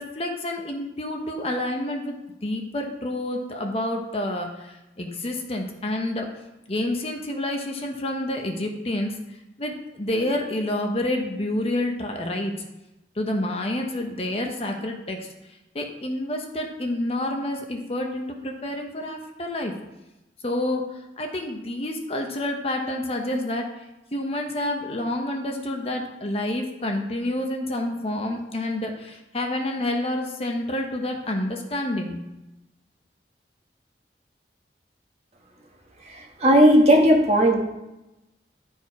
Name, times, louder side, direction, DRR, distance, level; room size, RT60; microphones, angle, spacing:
voice 1, 0.0-6.3 6.7-9.2 9.6-12.5 13.2-15.3 15.7-19.7 20.4-23.7 24.1-32.2, left 1 dB, 35° left, 2 dB, 1.0 m, -28 dB
voice 2, 36.1-37.6, equal, 35° right, 0 dB, 1.4 m, -16 dB
11.0 x 4.6 x 4.8 m, 0.97 s
head